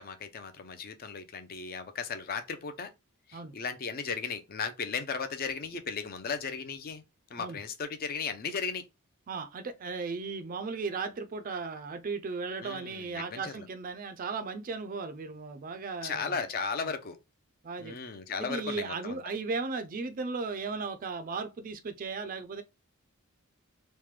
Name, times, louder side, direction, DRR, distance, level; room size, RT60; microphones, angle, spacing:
voice 1, 0.0-2.9 3.3-7.0 7.3-8.8 12.6-13.7 16.0-17.2 17.8-19.2, left 5 dB, 40° left, 0.4 m, -36 dB
voice 2, 9.3-16.4 17.6-18.0 18.4-22.6, right 4 dB, 40° right, 0.4 m, -36 dB
3.2 x 2.1 x 3.1 m
head